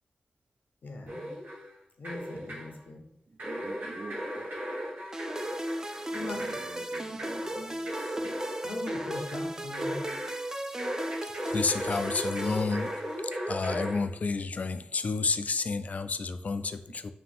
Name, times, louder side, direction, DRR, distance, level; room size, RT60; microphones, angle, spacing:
voice 1, 0.8-1.3 2.0-3.1 6.1-6.6 8.6-10.0, left 2 dB, 85° left, 4 dB, 0.8 m, -40 dB
sound 1, 1.1-1.7 2.0-2.8 3.4-10.4 10.8-14.0, equal, 90° right, 1.2 m, -36 dB
voice 2, 3.4-4.4 6.1-8.4, right 2 dB, 60° right, -4 dB, 0.7 m, -45 dB
sound 2, 5.1-13.4, right 1 dB, 20° right, 0.4 m, -37 dB
voice 3, 11.5-12.9 13.5-17.1, left 4 dB, 55° left, 10 dB, 0.3 m, -30 dB
4.9 x 2.7 x 3.5 m, 0.75 s
wide cardioid pair, 75°, 3 cm